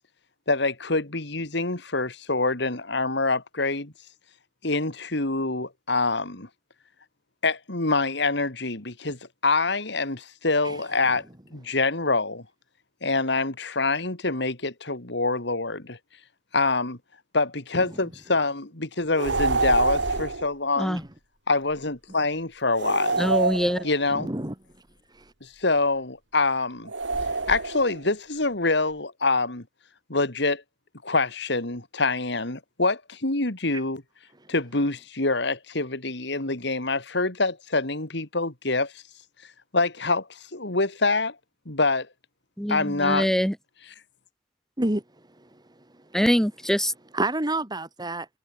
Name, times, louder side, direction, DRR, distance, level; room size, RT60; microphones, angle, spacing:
voice 1, 0.5-3.9 4.6-6.5 7.4-11.2 11.5-12.4 13.0-16.0 16.5-17.0 17.3-21.0 21.5-23.3 23.8-24.3 25.4-26.9 27.5-29.6 30.1-30.6 31.0-34.0 34.5-38.9 39.7-41.3 41.6-42.1 42.7-43.3, left 3 dB, 65° left, 3.1 m, -25 dB
sound 1, 19.2-20.5 22.8-24.2 26.9-28.0, right 3 dB, 75° right, 2.9 m, -26 dB
voice 2, 23.2-23.8 42.6-43.5 46.1-46.9, equal, 5° left, 2.2 m, -24 dB
voice 3, 24.1-24.5 25.1-25.2 44.8-45.0 45.4-45.6 47.1-48.3, right 2 dB, 25° right, 2.3 m, -28 dB
head